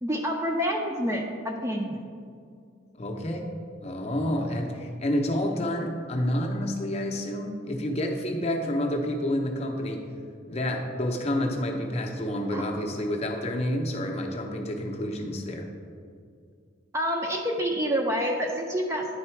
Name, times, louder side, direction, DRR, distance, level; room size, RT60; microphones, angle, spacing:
voice 1, 0.0-2.0 12.5-12.6 16.9-19.2, equal, 15° right, 1 dB, 0.4 m, -28 dB
voice 2, 2.9-3.5 3.8-10.0 10.5-15.7, left 1 dB, 30° left, 2 dB, 0.6 m, -29 dB
9.9 x 3.8 x 4.5 m, 2.3 s
head